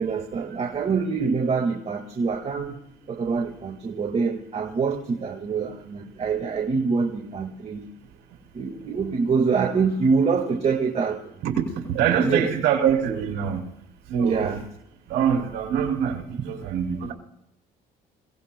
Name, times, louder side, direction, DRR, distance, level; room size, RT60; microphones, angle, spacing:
voice 1, 0.0-2.8 3.1-7.9 8.5-11.2 12.2-12.5 14.2-14.6, right 5 dB, 40° right, 1.7 m, -25 dB
voice 2, 11.4-13.6 14.1-14.6 15.1-17.1, right 8 dB, 80° right, 3.0 m, -24 dB
28.5 x 17.5 x 2.2 m
cardioid pair, 110°, 17 cm